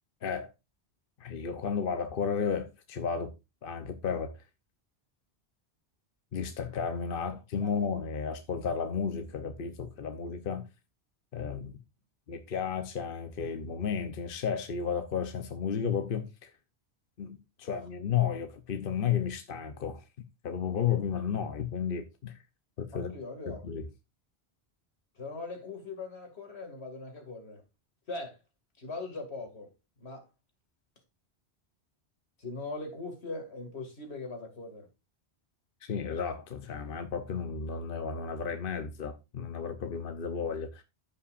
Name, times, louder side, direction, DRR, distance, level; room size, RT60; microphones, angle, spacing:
voice 1, 1.2-3.3 3.6-4.3 6.3-10.7 11.3-11.8 12.3-16.5 17.2-20.0 20.4-22.3 22.8-23.1 23.5-23.9 35.8-40.8, left 7 dB, 60° left, 1.0 m, -33 dB
voice 2, 22.9-23.6 25.2-27.6 28.1-28.4 28.8-29.7 30.0-30.2 32.4-34.9, left 3 dB, 80° left, 2.6 m, -40 dB
14.5 x 5.8 x 2.5 m
omnidirectional pair, 1.1 m